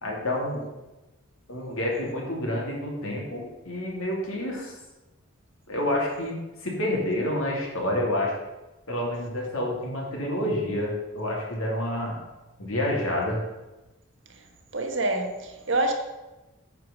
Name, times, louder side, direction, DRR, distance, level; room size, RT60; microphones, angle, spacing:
voice 1, 0.0-0.6 1.5-4.8 5.7-8.3 8.9-12.2 12.6-13.4, left 1 dB, 80° left, -2 dB, 2.6 m, -28 dB
voice 2, 14.7-15.9, right 2 dB, 60° right, 3 dB, 1.3 m, -26 dB
9.1 x 4.8 x 6.4 m, 1.1 s
head